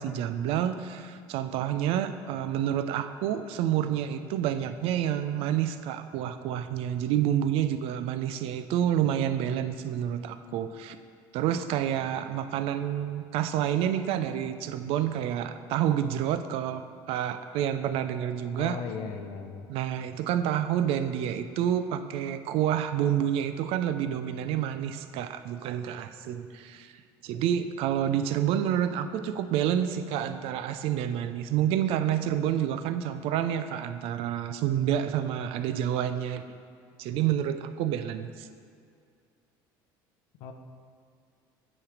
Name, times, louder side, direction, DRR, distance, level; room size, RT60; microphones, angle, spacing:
voice 1, 0.0-11.0 11.3-18.8 19.7-26.9 27.2-36.4 37.0-38.5, right 10 dB, 70° right, 11 dB, 0.4 m, -28 dB
voice 2, 18.6-19.7 40.4-40.5, left 6 dB, 70° left, 6 dB, 0.6 m, -37 dB
8.6 x 3.2 x 5.0 m, 2.3 s
supercardioid pair, 95°, 10 cm